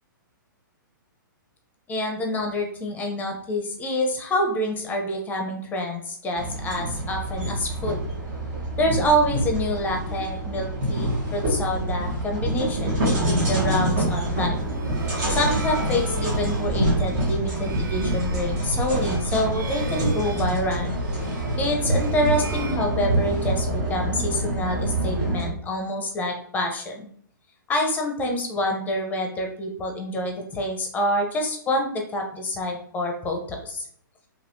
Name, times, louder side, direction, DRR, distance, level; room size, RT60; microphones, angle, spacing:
voice 1, 1.9-8.0 8.8-14.7 15.3-21.0 21.6-27.1 27.7-33.9, left 1 dB, 15° left, 2 dB, 0.6 m, -27 dB
sound 1, 6.4-25.5, right 1 dB, 50° right, 1.3 m, -26 dB
sound 2, 14.5-23.5, right 3 dB, 70° right, 0.6 m, -38 dB
3.2 x 2.8 x 2.6 m, 0.63 s
hypercardioid pair, 130°, 11 cm